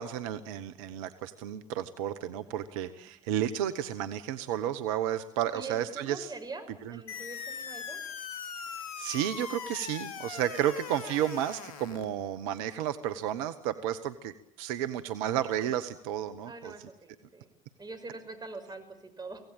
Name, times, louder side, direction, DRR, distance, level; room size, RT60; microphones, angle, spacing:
voice 1, 0.0-6.3 6.8-6.9 9.0-16.7, right 11 dB, 75° right, 10 dB, 1.1 m, -32 dB
voice 2, 2.7-3.1 5.5-8.0 10.5-10.8 16.4-17.5 17.8-19.4, right 3 dB, 25° right, 6 dB, 6.0 m, -44 dB
sound 1, 7.1-12.1, left 7 dB, 85° left, 1.3 m, -40 dB
25.0 x 17.0 x 8.9 m, 0.79 s
hypercardioid pair, 60°, 18 cm